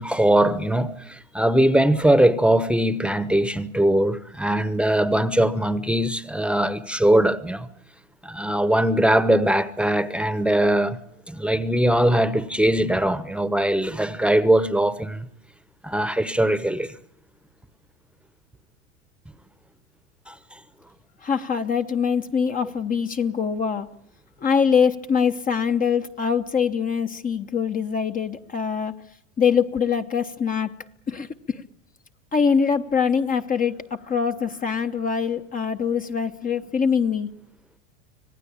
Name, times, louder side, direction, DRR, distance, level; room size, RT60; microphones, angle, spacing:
voice 1, 0.0-7.7 8.2-11.0 11.3-15.3 15.8-16.9 20.3-20.6, right 1 dB, 5° right, 1.0 m, -21 dB
voice 2, 21.2-23.9 24.4-28.9 29.4-30.7 31.1-31.6 32.3-37.3, left 6 dB, 25° left, 0.9 m, -23 dB
26.5 x 18.0 x 8.7 m
supercardioid pair, 110°, 36 cm